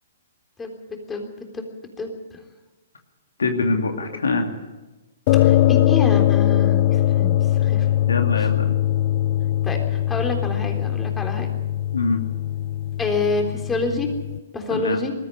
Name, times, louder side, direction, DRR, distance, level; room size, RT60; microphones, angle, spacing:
voice 1, 2.0-2.4 4.1-4.2 5.3-7.9 8.4-8.5 9.6-11.6 13.0-14.1 14.5-15.1, left 2 dB, 15° left, 3 dB, 3.7 m, -28 dB
voice 2, 3.4-4.5 8.1-8.8 11.9-12.2 14.7-15.0, left 3 dB, 85° left, 5 dB, 2.5 m, -23 dB
sound 1, 5.3-14.4, left 12 dB, 45° left, 0.6 m, -21 dB
20.5 x 14.0 x 9.8 m, 1.1 s
hypercardioid pair, 125°, 0 cm